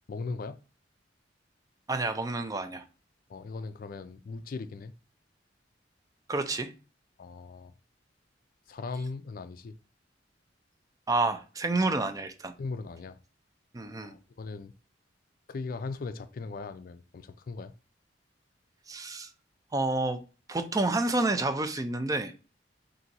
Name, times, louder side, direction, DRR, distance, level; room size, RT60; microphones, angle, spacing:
voice 1, 0.1-0.6 3.3-4.9 7.2-7.7 8.7-9.7 12.6-13.2 14.0-14.7 15.5-17.7, left 4 dB, 50° left, 0.4 m, -38 dB
voice 2, 1.9-2.9 6.3-6.7 11.1-12.5 13.7-14.2 18.9-19.3 19.7-20.2 20.5-22.3, right 2 dB, 20° right, 0.4 m, -29 dB
4.3 x 2.7 x 3.9 m
head